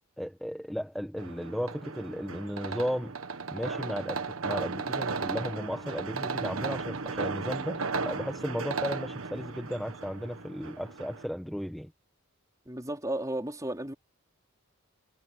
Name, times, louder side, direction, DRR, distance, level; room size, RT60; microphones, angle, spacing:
voice 1, 0.2-3.1 3.5-11.9, equal, ahead, 1.4 m, -35 dB
sound 1, 1.2-11.3, right 4 dB, 65° right, 1.5 m, -35 dB
voice 2, 12.7-13.9, right 1 dB, 15° right, 4.4 m, -33 dB
head